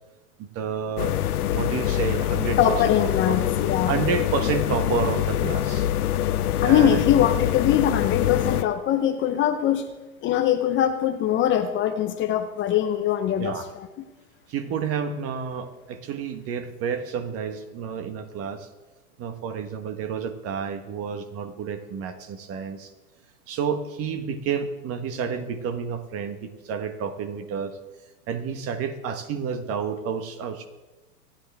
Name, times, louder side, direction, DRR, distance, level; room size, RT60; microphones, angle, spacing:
voice 1, 0.4-1.1 1.5-2.9 3.3-3.4 3.9-5.9 6.6-7.0 13.4-13.7 14.5-18.7 19.2-22.9 23.5-27.8 28.3-30.7, right 6 dB, 30° right, 9 dB, 1.4 m, -30 dB
Roomtone Office ventilation, 1.0-8.6, left 11 dB, 90° left, 1.0 m, -25 dB
voice 2, 2.6-3.9 6.6-9.8 10.2-13.9, left 10 dB, 25° left, 8 dB, 0.9 m, -22 dB
26.5 x 10.5 x 3.5 m, 1.1 s
hypercardioid pair, 135°, 43 cm